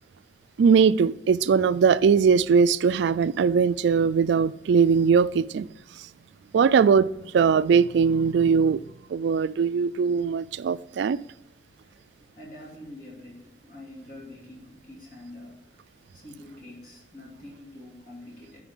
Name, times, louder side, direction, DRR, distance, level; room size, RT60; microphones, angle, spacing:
voice 1, 0.6-5.7 6.5-8.8 9.1-11.2, right 6 dB, 75° right, 0.3 m, -20 dB
voice 2, 11.8-15.9 16.1-18.6, left 1 dB, 50° left, 2.6 m, -46 dB
9.5 x 4.9 x 3.7 m
head